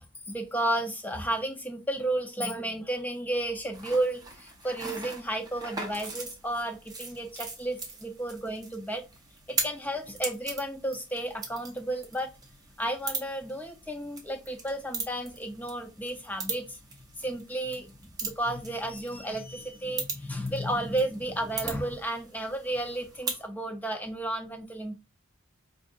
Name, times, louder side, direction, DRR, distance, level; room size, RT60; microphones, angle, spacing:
voice 1, 0.3-9.0 9.5-12.3 12.8-16.8 17.2-17.9 18.2-25.0, right 1 dB, 10° left, 0.4 m, -32 dB
sound 1, 3.7-23.5, right 4 dB, 20° right, 0.7 m, -40 dB
4.8 x 2.6 x 2.4 m
head